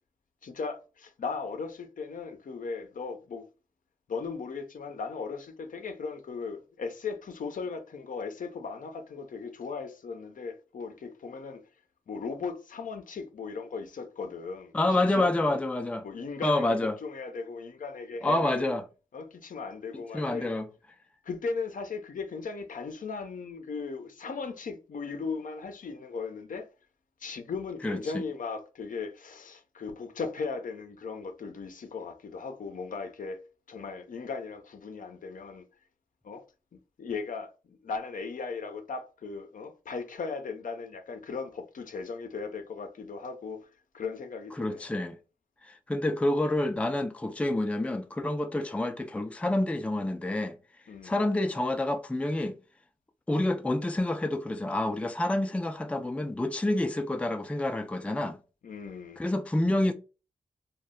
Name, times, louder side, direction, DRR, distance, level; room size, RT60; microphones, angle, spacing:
voice 1, 0.4-3.5 4.1-11.6 12.1-15.6 16.0-18.7 19.1-20.5 21.2-26.7 27.2-33.4 33.7-35.7 36.2-36.4 36.7-44.8 50.9-51.1 58.6-59.2, left 4 dB, 60° left, 0.6 m, -37 dB
voice 2, 14.7-16.1 16.4-17.0 18.2-18.8 20.1-20.7 27.8-28.0 44.6-45.2 45.6-50.6 51.0-52.6 53.3-58.4 59.2-59.9, left 1 dB, 10° left, 0.4 m, -28 dB
2.1 x 2.0 x 3.6 m
supercardioid pair, 45°, 15 cm